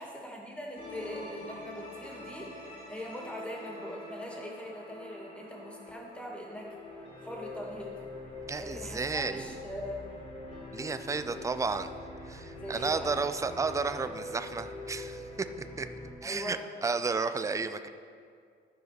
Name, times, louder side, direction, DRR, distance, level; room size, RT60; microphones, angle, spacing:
voice 1, 0.0-6.8 7.2-7.9 8.6-10.0 12.5-13.1 16.2-16.6, equal, 5° left, -2 dB, 2.2 m, -41 dB
sound 1, 0.8-16.1, left 2 dB, 30° left, 2.4 m, -45 dB
voice 2, 8.5-9.4 10.7-11.9 12.3-15.5 15.8-15.9 16.2-17.9, right 4 dB, 15° right, 10 dB, 0.4 m, -32 dB
13.0 x 4.7 x 5.9 m, 2.3 s
cardioid pair, 90°, 20 cm